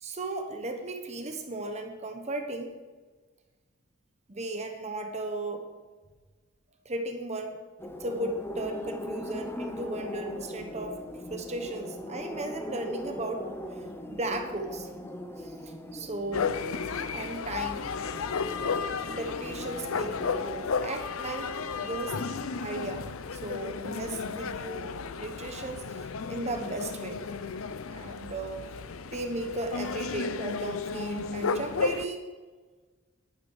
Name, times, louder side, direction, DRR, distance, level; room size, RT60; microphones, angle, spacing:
voice 1, 0.0-2.8 4.3-5.6 6.8-7.6 8.0-11.0 11.3-13.8 14.1-14.9 15.4-16.6 17.1-17.9 19.1-20.2 20.8-22.2 22.6-24.9 25.2-27.3 27.9-28.8 29.1-32.3, right 2 dB, 30° right, 5 dB, 1.2 m, -36 dB
sound 1, 7.8-20.7, left 1 dB, 10° left, 0.7 m, -40 dB
sound 2, 16.3-32.1, left 5 dB, 70° left, 0.6 m, -33 dB
10.5 x 10.5 x 4.9 m, 1.4 s
head